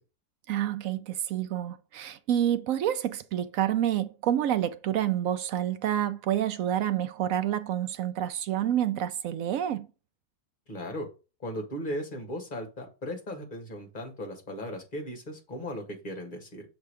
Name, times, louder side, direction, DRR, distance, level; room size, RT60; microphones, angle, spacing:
voice 1, 0.5-9.9, right 11 dB, 75° right, 0.7 m, -28 dB
voice 2, 10.7-11.1 11.4-16.6, equal, 25° left, 1.9 m, -37 dB
6.5 x 3.6 x 4.8 m
omnidirectional pair, 2.0 m